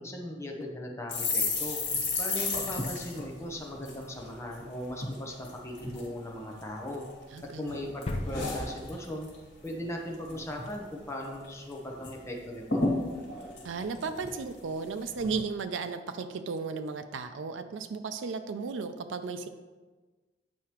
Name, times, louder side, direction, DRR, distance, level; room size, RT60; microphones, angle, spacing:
voice 1, 0.0-1.8 2.2-7.0 7.4-9.3 9.6-12.9, left 1 dB, 15° left, 0 dB, 0.8 m, -38 dB
sound 1, 1.1-4.6 4.9-5.2 5.4-6.1 6.6-7.4 7.7-9.3 9.6-9.9 10.1-10.7 11.1-11.2 11.4-12.1 12.4-12.5 12.7-14.6 15.1-15.4, left 3 dB, 60° left, 1.8 m, -33 dB
voice 2, 7.3-7.9 13.6-19.5, right 4 dB, 85° right, 8 dB, 0.4 m, -35 dB
sound 2, 8.1-9.9 10.2-10.3, left 2 dB, 35° left, 0.4 m, -38 dB
8.3 x 4.7 x 3.0 m, 1.3 s
head